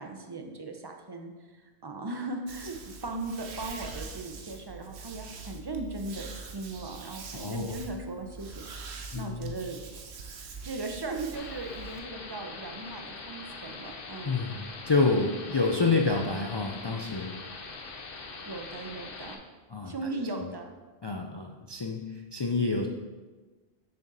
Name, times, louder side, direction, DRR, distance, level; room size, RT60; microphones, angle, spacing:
voice 1, 0.0-9.8 10.6-14.4 18.4-19.4 19.9-20.7, right 2 dB, 25° right, 4 dB, 0.7 m, -38 dB
sound 1, 2.5-12.0, right 4 dB, 85° right, 1.1 m, -43 dB
voice 2, 7.3-7.8 9.1-9.5 14.2-17.4 19.7-20.5 21.0-22.9, left 3 dB, 45° left, 1 dB, 0.3 m, -28 dB
sound 2, 11.4-19.4, left 4 dB, 60° left, 1.0 m, -42 dB
6.7 x 6.5 x 4.0 m, 1.3 s
omnidirectional pair, 1.1 m